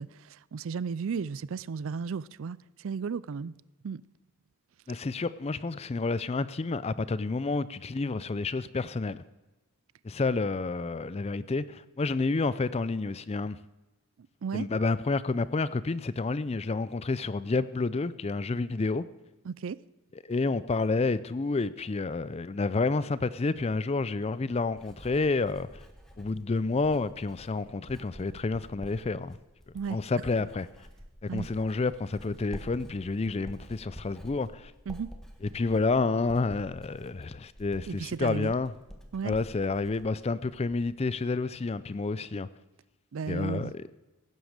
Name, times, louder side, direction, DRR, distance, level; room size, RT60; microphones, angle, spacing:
voice 1, 0.0-3.5 3.8-4.0 14.4-14.7 19.5-19.8 29.7-30.0 31.3-31.5 34.9-35.1 37.9-38.5 39.1-39.3 43.1-43.7, right 5 dB, 60° right, 0.4 m, -34 dB
voice 2, 4.9-9.2 10.0-13.6 14.5-19.0 20.2-25.8 26.2-29.4 29.9-30.7 31.2-34.7 35.4-38.7 39.2-42.5 43.3-43.8, left 3 dB, 25° left, 0.4 m, -29 dB
Writing, 24.5-41.1 41.4-41.8, equal, ahead, 1.5 m, -49 dB
16.5 x 9.3 x 6.5 m
head